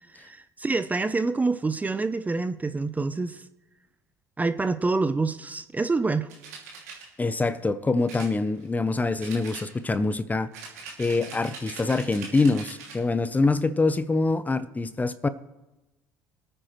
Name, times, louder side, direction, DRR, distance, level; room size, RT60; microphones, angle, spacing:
voice 1, 0.2-3.4 4.4-6.3, right 3 dB, 20° right, 11 dB, 0.7 m, -26 dB
sound 1, 6.3-7.1 8.1-8.9 9.2-10.0 10.5-13.0, right 5 dB, 85° right, 2.6 m, -42 dB
voice 2, 7.2-10.5 11.0-15.3, left 3 dB, 20° left, 14 dB, 0.8 m, -25 dB
23.0 x 9.1 x 3.2 m, 1.0 s
hypercardioid pair, 65°, 8 cm